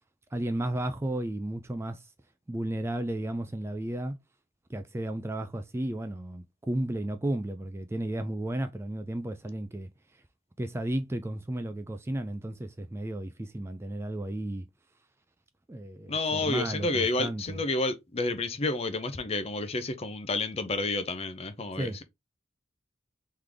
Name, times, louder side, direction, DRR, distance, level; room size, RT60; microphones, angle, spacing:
voice 1, 0.3-2.1 2.5-4.1 4.7-9.9 10.6-14.7 15.7-17.6 21.8-22.0, right 1 dB, 15° right, 0.3 m, -33 dB
voice 2, 16.1-22.0, left 2 dB, 30° left, 0.6 m, -30 dB
3.9 x 3.2 x 3.4 m
head